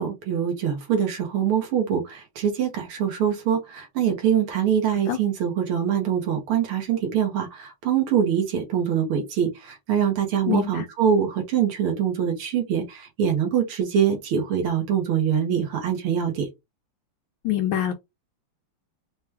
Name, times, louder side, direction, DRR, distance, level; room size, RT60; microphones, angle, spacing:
voice 1, 0.0-16.5, right 8 dB, 80° right, 1.9 m, -24 dB
voice 2, 10.5-10.8 17.4-17.9, left 11 dB, 75° left, 1.3 m, -24 dB
4.8 x 2.2 x 3.2 m
omnidirectional pair, 2.4 m